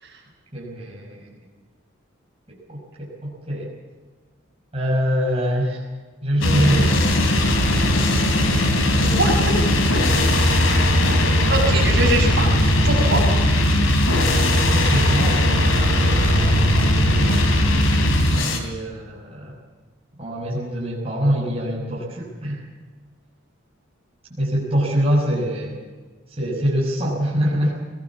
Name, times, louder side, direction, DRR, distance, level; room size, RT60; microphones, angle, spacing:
voice 1, 0.5-1.3 2.5-3.7 4.7-5.8 6.2-7.2 10.0-10.2 14.6-15.4 15.9-17.4 18.2-19.6 20.2-22.6 24.4-25.8 26.3-27.8, equal, 30° right, -5 dB, 5.6 m, -25 dB
sound 1, 6.4-18.6, left 1 dB, 85° left, 3.5 m, -18 dB
voice 2, 8.5-9.6 11.5-13.2, right 2 dB, 55° right, -1 dB, 6.7 m, -24 dB
22.0 x 18.5 x 7.2 m, 1.4 s
head